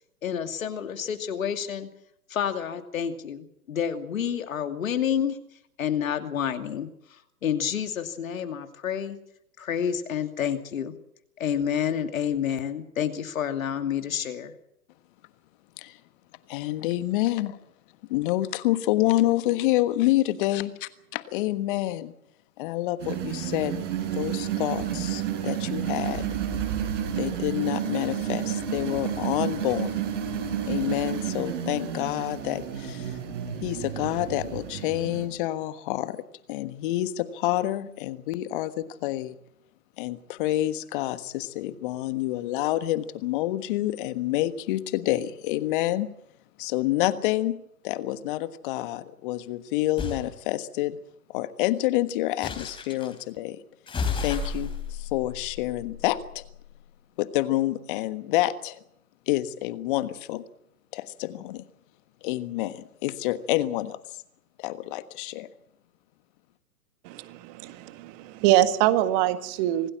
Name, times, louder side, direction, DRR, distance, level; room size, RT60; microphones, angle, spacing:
voice 1, 0.2-1.9 2.3-5.4 5.8-9.2 9.6-10.9 11.4-14.5, left 8 dB, 65° left, 7 dB, 2.6 m, -29 dB
voice 2, 16.5-17.6 18.1-22.1 22.6-26.3 27.2-30.0 30.6-33.2 33.6-36.2 36.5-39.4 40.0-46.1 46.6-51.0 51.3-53.6 54.2-56.4 57.2-58.8 59.3-60.4 60.9-61.7 62.2-64.2 64.6-65.5, left 15 dB, 35° left, 13 dB, 1.4 m, -28 dB
sound 1, 23.0-35.3, right 9 dB, 55° right, 6.9 m, -31 dB
sound 2, 50.0-50.3 52.4-53.1 53.9-56.5, left 5 dB, 10° left, 3.4 m, -33 dB
voice 3, 67.0-69.9, right 13 dB, 30° right, 11 dB, 1.7 m, -24 dB
26.0 x 17.0 x 7.4 m, 0.75 s
hypercardioid pair, 125°, 44 cm